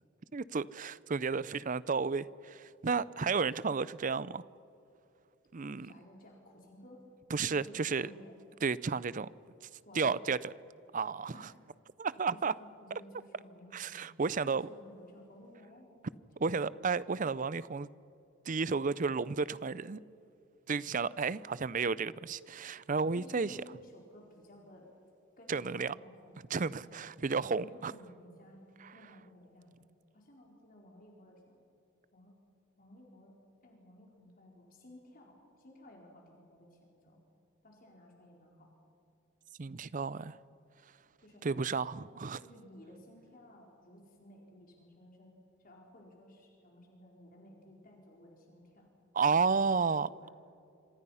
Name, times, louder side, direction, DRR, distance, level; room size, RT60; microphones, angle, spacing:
voice 1, 0.3-4.4 5.5-5.9 7.3-8.1 8.6-9.3 9.9-10.4 10.9-11.3 12.0-12.5 13.7-14.7 16.4-17.9 18.5-20.0 20.7-23.6 25.5-25.9 26.5-27.9 39.6-40.4 41.4-42.4 49.1-50.1, right 5 dB, 40° right, 18 dB, 0.5 m, -32 dB
voice 2, 5.8-7.0 7.4-8.4 9.9-10.4 11.3-11.5 12.3-13.9 14.4-16.1 16.4-16.6 23.1-24.9 25.4-26.4 26.7-27.0 27.4-28.6 28.9-29.7 30.1-31.6 32.1-32.4 32.8-33.3 33.6-37.2 37.6-38.7 41.2-41.5 42.4-45.3 45.6-48.9 49.3-50.3, left 1 dB, 40° left, -1 dB, 4.3 m, -56 dB
26.5 x 26.0 x 5.7 m, 2.6 s
head